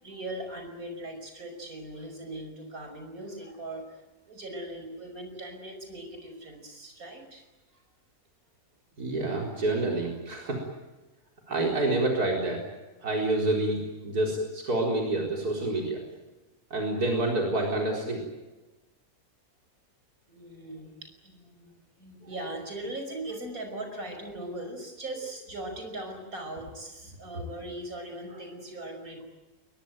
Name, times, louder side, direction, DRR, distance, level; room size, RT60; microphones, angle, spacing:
voice 1, 0.0-7.4 7.7-7.8 20.3-29.2, right 1 dB, 65° right, 5 dB, 5.9 m, -40 dB
voice 2, 9.0-10.7 11.5-12.6 13.0-16.0 16.7-18.2, right 2 dB, 85° right, 0 dB, 4.8 m, -28 dB
22.5 x 22.0 x 9.3 m, 1.1 s
omnidirectional pair, 1.6 m